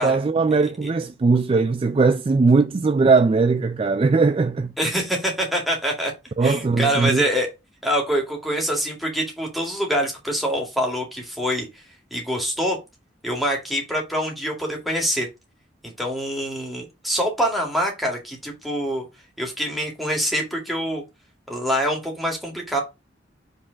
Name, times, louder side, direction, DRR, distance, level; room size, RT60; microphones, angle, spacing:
voice 1, 0.0-4.7 6.4-7.2, right 4 dB, 30° right, 0.3 m, -19 dB
voice 2, 4.8-6.1 6.4-7.5 7.8-11.8 12.1-12.8 13.2-15.3 15.8-19.0 19.4-21.0 21.5-22.8, equal, ahead, 2.1 m, -25 dB
5.4 x 3.7 x 5.1 m
head